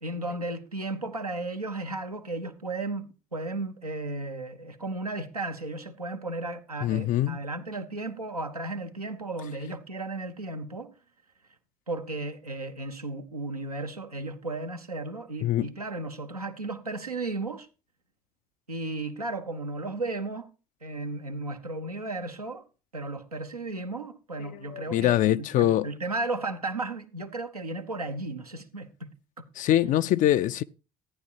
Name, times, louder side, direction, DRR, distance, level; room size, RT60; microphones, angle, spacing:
voice 1, 0.0-10.9 11.9-17.7 18.7-20.5 20.8-22.6 22.9-29.1 29.4-29.5, right 2 dB, 90° right, 0.8 m, -34 dB
voice 2, 6.8-7.4 15.4-15.7 24.7-25.9 29.6-30.6, left 13 dB, 45° left, 0.4 m, -23 dB
14.5 x 9.6 x 2.8 m
figure-of-eight pair, 55°, 19 cm